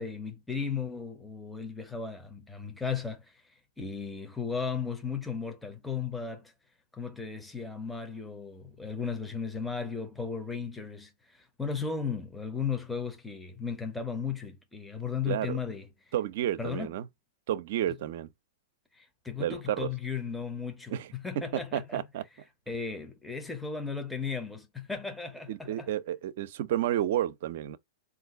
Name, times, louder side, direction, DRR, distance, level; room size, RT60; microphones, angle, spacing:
voice 1, 0.0-3.4 3.8-6.5 6.9-16.1 16.6-16.9 18.9-22.0 22.7-25.9, left 6 dB, 5° left, 0.7 m, -35 dB
voice 2, 15.3-15.6 16.1-17.1 17.5-18.3 19.4-19.9 20.9-21.1 21.7-22.2 25.5-27.8, right 12 dB, 60° right, 0.5 m, -31 dB
3.9 x 2.5 x 3.7 m
hypercardioid pair, 115°, 0 cm